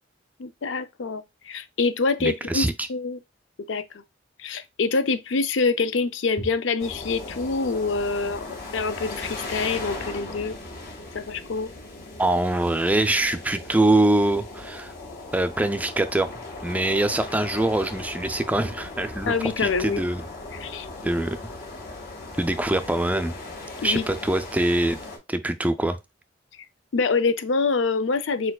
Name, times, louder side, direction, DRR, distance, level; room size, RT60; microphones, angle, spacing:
voice 1, 0.4-3.2 3.7-3.8 4.4-10.5 11.1-11.7 19.3-20.0 20.6-20.9 23.8-24.1 26.9-28.5, left 4 dB, 85° left, 0.5 m, -25 dB
voice 2, 2.2-2.9 12.2-14.9 15.3-20.2 21.0-21.4 22.4-23.3 23.8-25.0 25.3-26.0, right 1 dB, 10° right, 0.4 m, -24 dB
sound 1, 6.8-25.2, left 2 dB, 55° left, 1.9 m, -38 dB
4.4 x 4.4 x 2.3 m
head